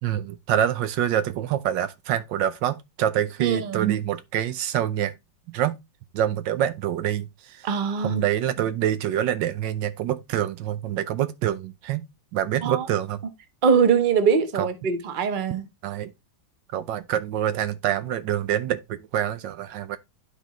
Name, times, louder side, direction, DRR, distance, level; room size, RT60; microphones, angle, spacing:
voice 1, 0.0-5.1 5.5-5.8 6.1-7.7 8.0-12.1 12.3-13.2 14.5-14.7 15.8-16.1 16.7-20.0, right 11 dB, 75° right, 1.3 m, -26 dB
voice 2, 3.4-3.9 7.6-8.2 12.6-12.8 13.6-15.6, right 6 dB, 35° right, 0.8 m, -22 dB
11.5 x 4.2 x 3.1 m
omnidirectional pair, 2.0 m